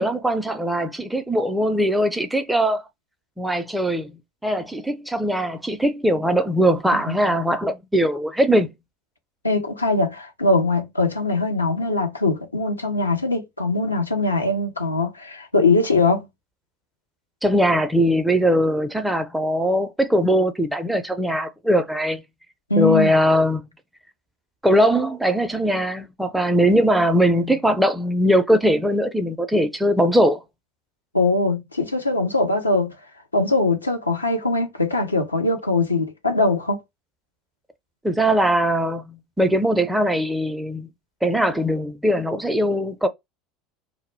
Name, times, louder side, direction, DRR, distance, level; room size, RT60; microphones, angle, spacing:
voice 1, 0.0-2.8 3.4-4.1 4.4-8.7 17.4-22.2 22.8-23.6 24.6-30.4 38.0-40.9 41.2-43.1, equal, 5° right, 0.4 m, -20 dB
voice 2, 9.4-16.3 22.7-23.1 31.1-33.0 33.3-36.8, left 3 dB, 85° left, 0.4 m, -21 dB
2.0 x 2.0 x 3.0 m
figure-of-eight pair, 70°, 0 cm